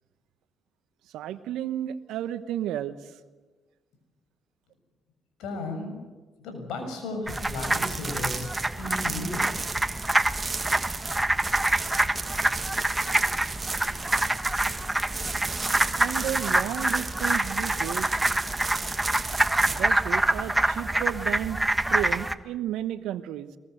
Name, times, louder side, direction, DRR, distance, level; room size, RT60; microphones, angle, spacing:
voice 1, 1.1-3.0 15.9-18.1 19.7-21.6 21.9-23.5, right 11 dB, 80° right, 13 dB, 1.1 m, -32 dB
voice 2, 5.4-6.1 6.4-8.5 8.8-9.5, left 2 dB, 75° left, 5 dB, 6.7 m, -34 dB
sound 1, 7.2-21.2, right 3 dB, 30° right, 2.2 m, -35 dB
sound 2, 7.3-22.3, right 1 dB, 15° right, 1.4 m, -26 dB
23.5 x 21.5 x 8.0 m, 1.3 s
hypercardioid pair, 50°, 0 cm